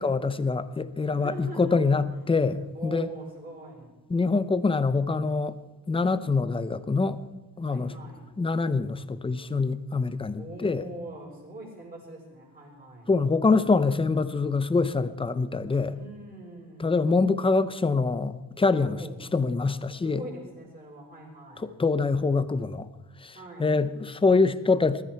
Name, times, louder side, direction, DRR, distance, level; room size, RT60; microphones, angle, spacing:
voice 1, 0.0-3.1 4.1-5.6 5.9-7.2 7.6-7.9 8.4-10.8 13.1-15.9 16.8-19.0 19.3-20.2 21.6-22.9 23.2-23.3 23.6-25.0, left 4 dB, 15° left, 13 dB, 0.6 m, -25 dB
voice 2, 1.1-1.8 2.1-2.2 2.7-3.9 7.6-8.3 10.4-13.1 15.9-17.0 18.8-19.2 20.0-21.7 23.3-23.8, right 1 dB, 25° right, -2 dB, 5.5 m, -42 dB
21.0 x 13.0 x 4.6 m, 1.1 s
wide cardioid pair, 165°, 39 cm